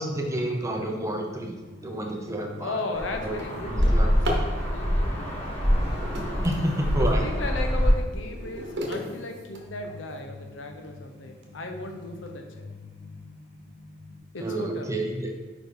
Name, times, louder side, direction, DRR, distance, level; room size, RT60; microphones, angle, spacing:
voice 1, 0.0-1.6 1.8-2.7 3.2-3.4 3.6-4.1 6.4-7.2 14.4-15.3, right 1 dB, 15° right, 2 dB, 0.7 m, -29 dB
sound 1, 0.7-14.2, left 3 dB, 60° left, 1.6 m, -47 dB
Drawer open or close, 1.9-2.1 2.6-4.6 5.6-7.2 7.8-10.2 10.8-10.9 11.4-11.5 11.9-12.3, equal, 65° right, 1.1 m, -36 dB
voice 2, 2.6-5.5 6.9-12.7 14.3-14.9, left 2 dB, 75° left, 4 dB, 0.8 m, -36 dB
sound 2, 2.9-7.9, equal, 35° left, 1.3 m, -25 dB
4.8 x 4.6 x 4.7 m, 1.3 s
head